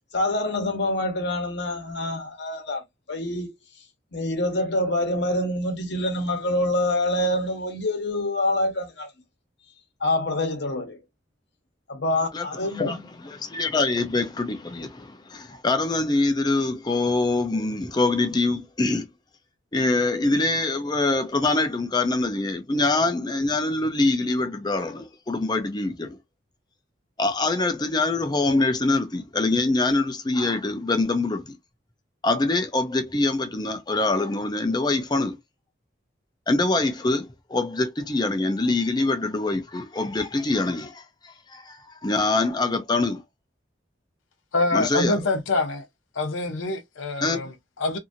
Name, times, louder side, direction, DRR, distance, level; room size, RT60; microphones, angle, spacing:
voice 1, 0.1-2.8 3.1-3.5 4.1-9.1 10.0-11.0 11.9-13.0, left 1 dB, 60° left, 1.0 m, -26 dB
voice 2, 13.2-19.1 19.7-26.2 27.2-31.6 32.2-35.4 36.5-41.8 42.0-43.2 44.7-45.2 47.2-47.5, left 2 dB, 20° left, 0.5 m, -24 dB
voice 3, 44.5-45.8 46.2-48.0, left 2 dB, 90° left, 0.8 m, -25 dB
2.7 x 2.6 x 2.5 m
head